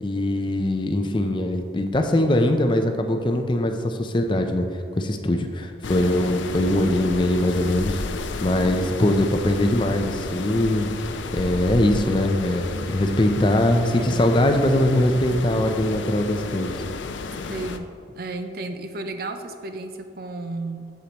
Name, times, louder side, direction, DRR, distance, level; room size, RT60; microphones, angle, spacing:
voice 1, 0.0-4.7 4.9-10.9 11.3-16.7, left 1 dB, 25° left, 5 dB, 0.5 m, -22 dB
sound 1, 5.8-17.8, left 3 dB, 80° left, 0.5 m, -32 dB
voice 2, 17.5-17.9 18.1-20.9, right 2 dB, 50° right, 7 dB, 0.5 m, -33 dB
8.3 x 7.5 x 2.9 m, 2.3 s
head